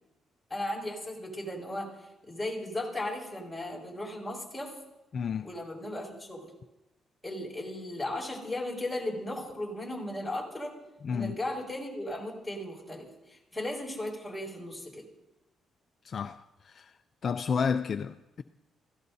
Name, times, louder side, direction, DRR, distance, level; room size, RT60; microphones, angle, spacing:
voice 1, 0.5-1.9 2.2-4.7 5.4-6.5 7.2-10.7 11.1-15.1, left 1 dB, 5° left, 7.1 m, -36 dB
voice 2, 5.1-5.5 11.0-11.4 16.0-16.9 17.2-18.4, left 6 dB, 50° left, 0.5 m, -31 dB
30.0 x 17.0 x 2.8 m
cardioid pair, 90°, 0 cm